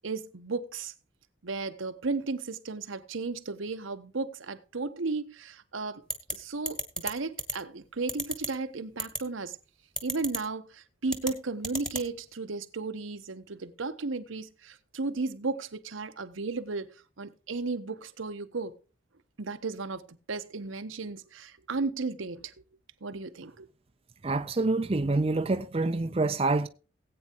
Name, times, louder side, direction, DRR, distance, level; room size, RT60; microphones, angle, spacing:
voice 1, 0.0-0.9 1.4-6.0 6.3-9.6 10.0-18.8 19.4-22.5 23.0-23.7, right 3 dB, 80° right, 0.9 m, -34 dB
sound 1, 6.1-6.3 6.7-7.1 7.4-7.5 8.1-8.5 9.0-9.2 10.0-10.4 11.1-11.3 11.6-12.0, equal, 5° left, 1.2 m, -31 dB
voice 2, 24.2-26.7, right 3 dB, 30° right, 0.5 m, -26 dB
18.0 x 8.6 x 2.9 m
head